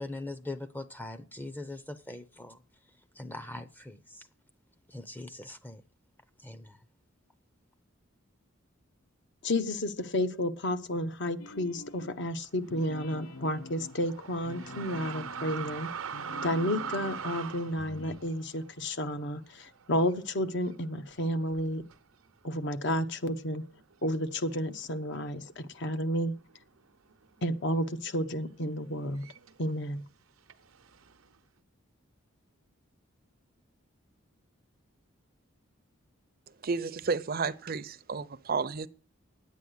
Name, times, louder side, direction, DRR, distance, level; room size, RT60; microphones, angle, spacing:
voice 1, 0.0-2.6 3.1-4.3 4.9-5.8 6.4-6.8, left 2 dB, 10° left, 0.6 m, -41 dB
voice 2, 9.4-15.9 16.4-21.8 22.4-23.6 24.0-26.3 27.4-29.3 29.6-30.0, left 1 dB, 55° left, 1.0 m, -31 dB
sound 1, 11.4-12.2 12.6-17.3 17.7-18.2, left 3 dB, 90° left, 0.8 m, -46 dB
sound 2, 12.6-20.3 20.6-20.7 21.5-22.0 22.7-22.8 23.1-24.8 25.1-25.7 25.9-29.7 30.5-31.4, right 7 dB, 90° right, 0.8 m, -43 dB
voice 3, 36.6-38.9, right 4 dB, 45° right, 0.6 m, -32 dB
10.0 x 8.4 x 7.9 m
head